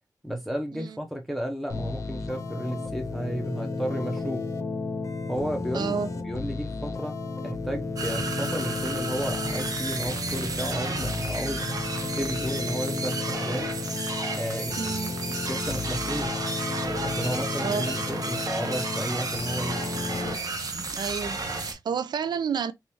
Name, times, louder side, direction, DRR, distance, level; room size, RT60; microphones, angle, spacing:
voice 1, 0.2-4.5 5.3-5.9 6.2-7.1 7.4-11.6 12.2-13.7 14.3-15.1 15.4-16.4 17.0-19.9, equal, ahead, 0.5 m, -33 dB
sound 1, 1.7-20.3, left 3 dB, 50° left, 0.6 m, -33 dB
voice 2, 5.7-6.1 14.8-15.1 17.6-17.9 20.9-22.7, right 6 dB, 85° right, 0.4 m, -30 dB
sound 2, 8.0-21.7, right 3 dB, 55° right, 0.9 m, -32 dB
3.4 x 3.1 x 2.8 m
wide cardioid pair, 165°, 7 cm